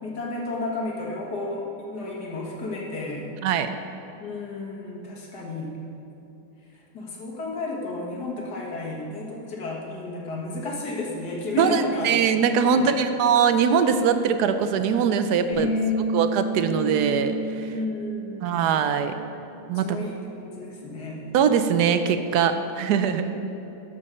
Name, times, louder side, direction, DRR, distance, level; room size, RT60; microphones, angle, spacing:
voice 1, 0.0-3.3 4.2-5.7 6.7-12.1 12.7-13.1 15.5-16.2 17.7-18.6 19.7-21.2, left 3 dB, 80° left, -2 dB, 2.2 m, -32 dB
voice 2, 11.6-15.7 16.1-17.7 18.4-19.1 19.7-19.9 21.3-23.3, right 7 dB, 85° right, 9 dB, 1.2 m, -22 dB
Bass guitar, 15.5-21.8, left 1 dB, 20° left, 2.2 m, -32 dB
12.5 x 5.4 x 6.7 m, 2.9 s
omnidirectional pair, 1.7 m